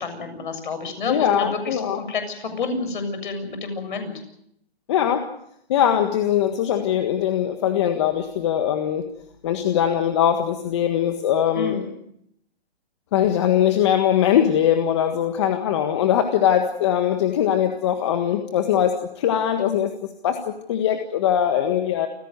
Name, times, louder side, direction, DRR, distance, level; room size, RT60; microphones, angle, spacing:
voice 1, 0.0-4.1 11.6-11.9, left 4 dB, 50° left, 8 dB, 7.2 m, -29 dB
voice 2, 1.1-2.0 4.9-5.3 5.7-9.0 9.4-11.8 13.1-19.9 20.2-22.1, left 10 dB, 25° left, 6 dB, 1.6 m, -21 dB
28.5 x 16.0 x 8.1 m, 0.75 s
hypercardioid pair, 160°, 31 cm